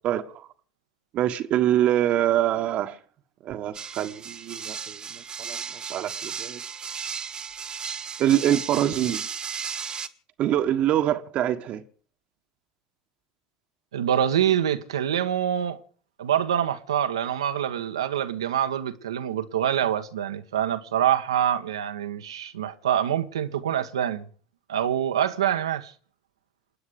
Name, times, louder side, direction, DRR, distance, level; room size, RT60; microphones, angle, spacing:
voice 1, 0.0-0.5 1.1-3.0 3.4-6.6 8.2-9.2 10.4-11.8, right 12 dB, 50° right, 1.5 m, -25 dB
sound 1, 3.7-10.1, right 6 dB, 30° right, 1.6 m, -35 dB
voice 2, 13.9-15.8 16.2-24.2 24.7-25.9, right 10 dB, 80° right, 1.5 m, -25 dB
28.0 x 9.6 x 5.1 m
hypercardioid pair, 75°, 3 cm